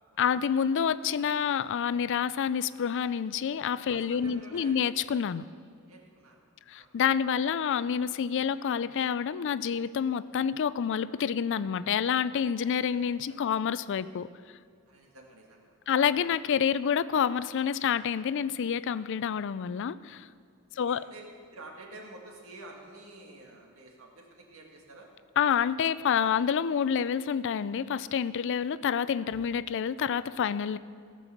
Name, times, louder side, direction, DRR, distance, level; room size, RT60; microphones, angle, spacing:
voice 1, 0.2-5.4 6.7-14.3 15.9-20.3 20.8-21.1 25.4-30.8, left 7 dB, 60° left, 16 dB, 0.4 m, -28 dB
voice 2, 3.9-4.8 5.9-6.9 12.3-12.7 13.3-13.5 14.9-16.3 20.7-21.2 21.5-25.1, right 2 dB, 70° right, 0 dB, 2.1 m, -50 dB
17.0 x 6.2 x 7.0 m, 2.2 s
head